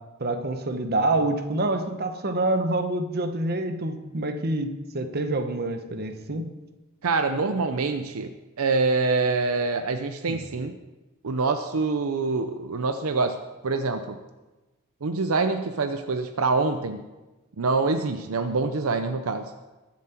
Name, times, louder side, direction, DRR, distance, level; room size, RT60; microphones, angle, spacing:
voice 1, 0.2-6.5 10.3-10.4, right 2 dB, 45° right, 7 dB, 1.0 m, -27 dB
voice 2, 7.0-8.3 8.6-10.7 11.2-14.2 15.0-17.0 17.6-19.5, right 3 dB, 70° right, 7 dB, 0.6 m, -25 dB
21.0 x 7.4 x 4.4 m, 1.1 s
head